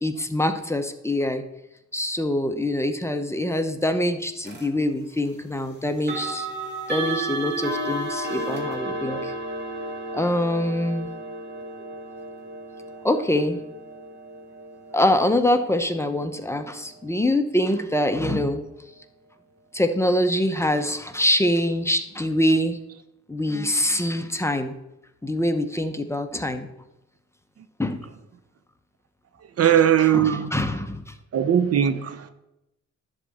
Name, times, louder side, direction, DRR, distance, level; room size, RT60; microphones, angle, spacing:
voice 1, 0.0-1.4 1.9-6.5 6.9-9.3 10.1-11.1 13.0-13.6 14.9-18.6 19.7-22.8 23.3-24.7 25.2-26.7 27.8-28.0 30.1-31.1, left 1 dB, 10° left, 0.8 m, -24 dB
sound 1, 4.4-4.7 6.0-16.8, right 2 dB, 35° right, 2.2 m, -33 dB
voice 2, 29.6-30.5 31.3-32.3, right 9 dB, 50° right, 0.8 m, -19 dB
11.0 x 4.1 x 7.7 m
cardioid pair, 90°, 30 cm